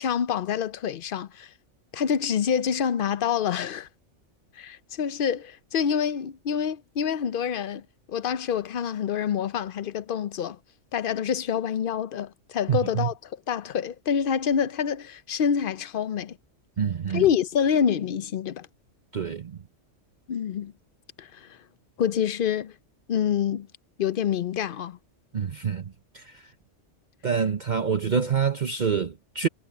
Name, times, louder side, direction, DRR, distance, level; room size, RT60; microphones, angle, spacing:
voice 1, 0.0-1.5 1.9-3.9 4.6-10.6 10.9-13.1 13.5-16.4 17.1-18.7 20.3-20.7 21.2-21.5 22.0-22.7 23.1-23.7 24.0-25.0, left 8 dB, 55° left, 0.7 m, -26 dB
voice 2, 12.7-13.1 16.8-17.3 19.1-19.6 25.3-26.2 27.2-29.5, right 7 dB, 45° right, 0.8 m, -26 dB
omnidirectional pair, 1.3 m